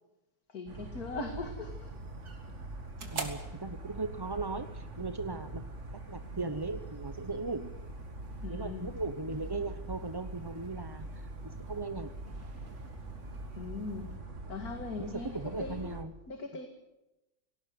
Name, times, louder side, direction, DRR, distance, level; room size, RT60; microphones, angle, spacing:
voice 1, 0.5-1.9 8.4-8.9 13.6-14.1 14.5-16.0 16.3-16.7, left 3 dB, 75° left, 4 dB, 2.7 m, -40 dB
sound 1, 0.7-16.0, right 2 dB, 50° right, 2.5 m, -43 dB
sound 2, 1.7-14.2, right 4 dB, 90° right, 3.1 m, -50 dB
voice 2, 3.1-5.6 6.1-7.7 8.5-11.3 11.7-12.1 15.0-16.1, right 3 dB, 20° right, 9 dB, 0.6 m, -38 dB
18.0 x 18.0 x 9.4 m, 0.93 s
omnidirectional pair, 1.6 m